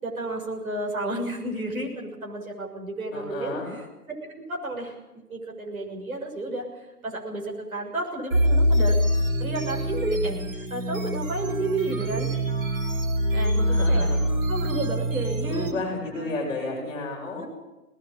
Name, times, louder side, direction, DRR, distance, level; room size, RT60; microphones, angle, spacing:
voice 1, 0.0-3.6 4.5-5.0 5.3-6.6 7.0-9.0 9.4-12.3 13.3-14.1 14.5-15.8 16.1-17.0 17.4-17.5, right 2 dB, 60° right, 1 dB, 6.9 m, -31 dB
voice 2, 3.1-3.7 13.7-14.2 15.4-17.5, left 3 dB, 10° left, -6 dB, 6.8 m, -32 dB
sound 1, 8.3-15.7, equal, 35° right, 3.7 m, -24 dB
21.5 x 19.5 x 8.9 m, 1.0 s
figure-of-eight pair, 145°, 47 cm